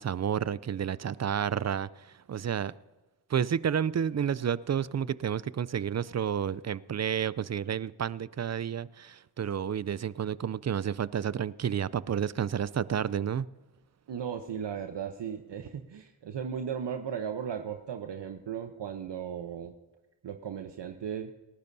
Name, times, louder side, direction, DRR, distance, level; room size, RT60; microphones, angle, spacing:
voice 1, 0.0-2.7 3.3-13.5, right 8 dB, 35° right, 0.5 m, -30 dB
voice 2, 14.1-19.7 20.2-21.3, right 8 dB, 60° right, 1.0 m, -36 dB
27.5 x 12.0 x 2.7 m
supercardioid pair, 45°, 47 cm